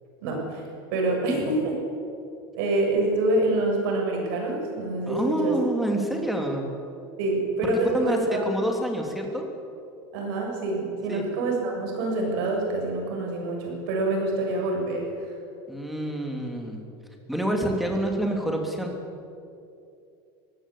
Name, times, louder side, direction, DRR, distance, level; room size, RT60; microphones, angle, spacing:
voice 1, 0.2-0.6 0.9-1.8 2.5-5.5 7.2-8.6 10.1-15.1, right 2 dB, 70° right, 0 dB, 7.3 m, -26 dB
voice 2, 5.1-6.7 7.9-9.4 11.1-11.3 15.7-16.8 17.3-18.9, right 1 dB, ahead, 2 dB, 2.9 m, -27 dB
23.0 x 16.0 x 8.6 m, 2.6 s
supercardioid pair, 160°, 12 cm